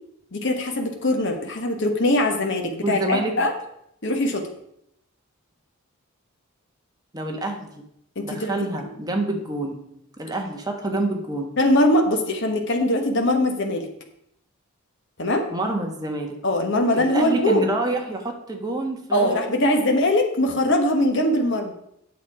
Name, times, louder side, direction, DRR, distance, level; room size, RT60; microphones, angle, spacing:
voice 1, 0.3-3.5 4.0-4.5 8.2-8.5 11.6-13.9 15.2-15.4 16.4-17.6 19.1-21.7, left 1 dB, 55° left, 4 dB, 1.3 m, -21 dB
voice 2, 2.8-3.3 7.1-7.8 8.2-9.8 10.2-11.5 15.5-16.4 16.9-19.9, right 2 dB, 15° right, 2 dB, 1.2 m, -27 dB
8.5 x 6.7 x 4.8 m, 0.76 s
head